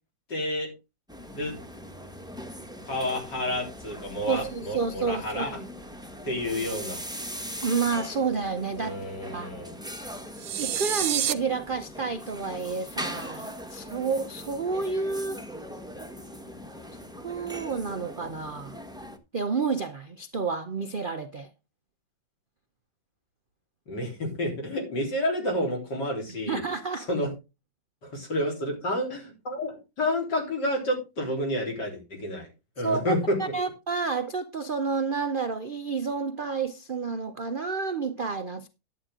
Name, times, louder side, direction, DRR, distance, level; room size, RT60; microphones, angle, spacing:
voice 1, 0.3-0.7 1.3-1.6 2.9-5.5 6.2-7.0 8.8-9.8 23.9-26.6 27.0-27.3 28.0-32.5 32.8-33.4, left 1 dB, 65° left, 4.4 m, -30 dB
sound 1, 1.1-19.2, equal, 5° right, 0.7 m, -40 dB
voice 2, 4.3-5.7 7.6-9.0 9.3-9.5 10.6-15.4 17.2-18.8 19.3-21.5 26.5-27.1 32.8-38.7, right 5 dB, 55° right, 0.5 m, -30 dB
sound 2, 10.4-11.3, right 11 dB, 85° right, 1.5 m, -27 dB
10.5 x 9.2 x 3.7 m
omnidirectional pair, 2.0 m